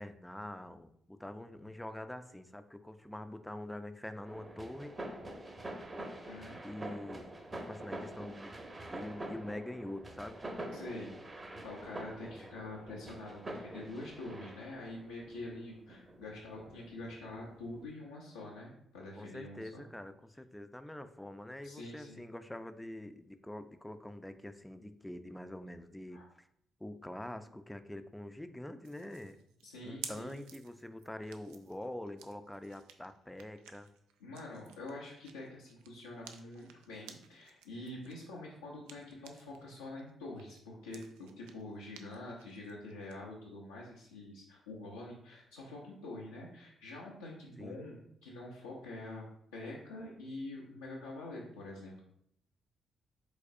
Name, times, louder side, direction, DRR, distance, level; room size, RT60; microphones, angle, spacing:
voice 1, 0.0-5.0 6.6-7.3 7.7-8.5 8.9-10.4 12.2-12.5 19.2-26.5 26.8-29.4 29.8-33.9 47.6-47.8, left 1 dB, 10° left, 10 dB, 0.5 m, -45 dB
sound 1, 4.3-17.8, right 1 dB, 30° right, 0.9 m, -46 dB
voice 2, 6.3-6.6 10.7-19.8 21.6-22.2 26.1-26.3 29.6-30.4 34.2-49.2 49.5-52.0, left 2 dB, 90° left, -6 dB, 0.7 m, -46 dB
sound 2, 28.8-39.6 40.0-43.2, right 8 dB, 80° right, 0.4 m, -54 dB
4.9 x 3.9 x 2.7 m, 0.72 s
hypercardioid pair, 45°, 0 cm